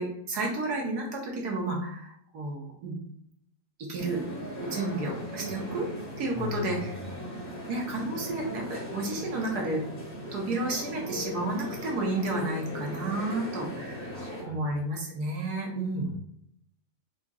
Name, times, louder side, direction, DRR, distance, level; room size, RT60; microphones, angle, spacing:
voice 1, 0.0-2.9 3.9-4.2 4.6-5.9 6.2-6.9 7.7-9.8 10.3-16.1, right 2 dB, 70° right, -1 dB, 1.5 m, -31 dB
sound 1, 4.0-14.4, equal, 35° left, 1.2 m, -38 dB
voice 2, 6.3-7.1 14.1-14.8 15.9-16.2, left 4 dB, 85° left, -4 dB, 2.1 m, -39 dB
4.9 x 2.9 x 2.4 m, 0.70 s
omnidirectional pair, 1.8 m